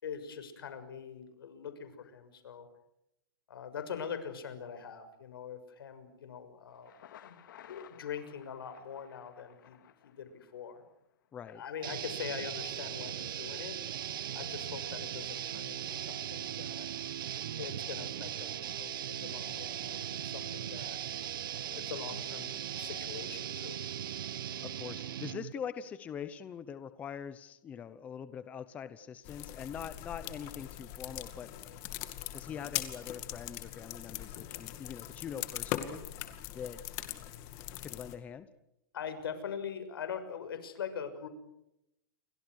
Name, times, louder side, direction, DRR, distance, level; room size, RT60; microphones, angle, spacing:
voice 1, 0.0-2.7 3.5-6.9 7.2-7.4 7.7-9.8 10.0-10.8 11.4-13.8 14.3-16.9 17.6-21.0 21.5-23.8 38.9-41.3, left 7 dB, 90° left, 9 dB, 6.5 m, -43 dB
Thunder, 6.7-10.7, left 10 dB, 60° left, 2.6 m, -56 dB
voice 2, 11.3-11.6 24.6-31.5 32.3-36.0 36.5-36.8 37.8-38.5, left 8 dB, 10° left, 13 dB, 0.9 m, -43 dB
sound 1, 11.8-25.5, right 10 dB, 70° right, 1.4 m, -39 dB
sound 2, 29.2-38.1, left 13 dB, 30° left, 2.3 m, -41 dB
30.0 x 24.0 x 6.5 m, 0.85 s
supercardioid pair, 175°, 12 cm